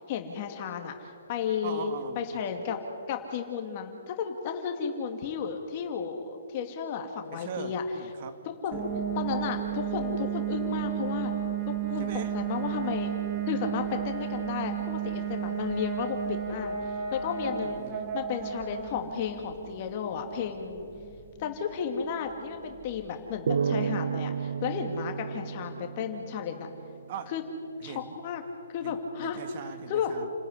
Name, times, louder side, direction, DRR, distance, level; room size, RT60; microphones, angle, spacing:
voice 1, 0.1-2.8 3.1-7.8 8.5-8.8 9.2-11.3 11.7-12.1 12.3-13.1 13.5-16.8 17.1-17.8 18.1-20.9 21.4-26.7 27.3-27.4 27.8-28.4 28.7-29.4 29.9-30.1, left 7 dB, 40° left, 4 dB, 2.3 m, -33 dB
voice 2, 1.6-2.4 7.3-8.4 8.7-8.9 12.0-12.3 17.6-18.0 27.1-27.3 27.8-28.2 28.8-30.3, right 7 dB, 45° right, 9 dB, 2.1 m, -40 dB
sound 1, 8.7-23.3, right 8 dB, 30° right, 3.2 m, -33 dB
sound 2, 23.5-26.9, right 7 dB, 65° right, 0.6 m, -32 dB
29.5 x 13.5 x 9.8 m, 2.7 s
hypercardioid pair, 140°, 0 cm